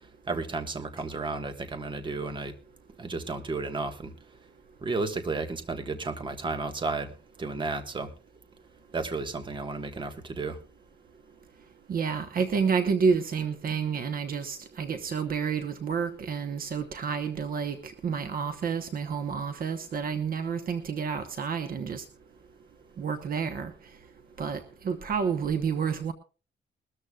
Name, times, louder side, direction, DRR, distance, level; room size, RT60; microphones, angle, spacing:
voice 1, 0.3-2.5 3.0-4.1 4.8-8.1 8.9-10.6, right 3 dB, 25° right, 6 dB, 1.4 m, -33 dB
voice 2, 11.9-22.0 23.0-23.7 24.4-26.1, right 6 dB, 50° right, 8 dB, 1.0 m, -29 dB
21.0 x 13.5 x 2.3 m, 0.35 s
wide cardioid pair, 175°, 19 cm